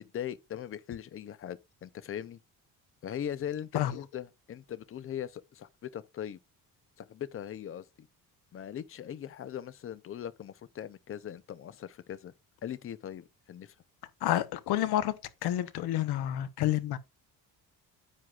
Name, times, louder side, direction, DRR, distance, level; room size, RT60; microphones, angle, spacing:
voice 1, 0.0-2.4 3.0-6.4 7.0-8.1 8.5-12.3 12.6-13.7, left 10 dB, 35° left, 0.6 m, -40 dB
voice 2, 14.2-17.0, left 13 dB, 85° left, 1.1 m, -29 dB
9.9 x 7.6 x 2.4 m
cardioid pair, 170°, 37 cm